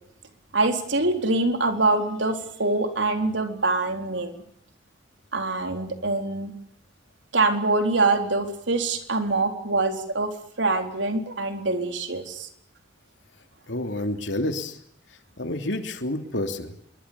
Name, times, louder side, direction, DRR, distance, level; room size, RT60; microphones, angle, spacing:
voice 1, 0.5-4.4 5.3-6.5 7.3-10.3 10.6-12.5, right 3 dB, 75° right, 5 dB, 4.2 m, -24 dB
voice 2, 13.7-14.8 15.4-16.7, left 1 dB, 70° left, 6 dB, 3.2 m, -29 dB
27.0 x 23.0 x 7.2 m, 0.68 s
head